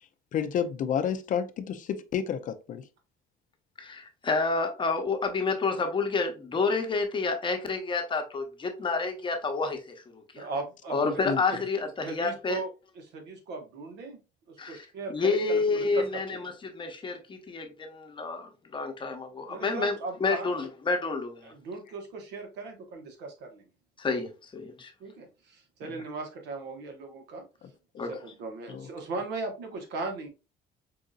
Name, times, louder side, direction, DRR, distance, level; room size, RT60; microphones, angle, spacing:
voice 1, 0.3-2.8 11.0-11.4 25.8-26.0 28.7-28.9, left 8 dB, 50° left, 0.5 m, -30 dB
voice 2, 3.8-10.5 10.9-12.6 14.6-19.9 20.2-21.5 24.0-24.9 28.0-28.2, left 4 dB, 30° left, 0.8 m, -29 dB
voice 3, 10.4-11.2 12.0-12.7 12.9-14.2 14.5-16.4 19.5-20.5 21.4-23.7 25.0-27.4 28.0-30.3, right 3 dB, 85° right, 1.1 m, -38 dB
4.8 x 2.6 x 2.3 m
cardioid pair, 110°, 17 cm